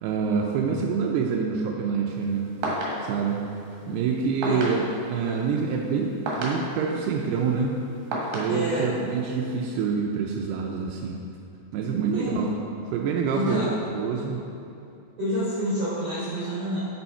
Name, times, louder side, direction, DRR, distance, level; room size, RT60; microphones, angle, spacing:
voice 1, 0.0-2.5 3.0-3.4 3.9-7.8 8.3-11.2 11.7-12.5 12.9-13.7 13.9-14.4, right 5 dB, 85° right, 0 dB, 2.6 m, -26 dB
sound 1, 2.1-9.6, right 1 dB, 65° right, 2.9 m, -35 dB
voice 2, 8.5-8.9 12.1-12.4 13.3-13.7 15.2-16.8, right 1 dB, 45° right, -12 dB, 2.9 m, -28 dB
7.9 x 7.0 x 4.4 m, 2.8 s
omnidirectional pair, 4.6 m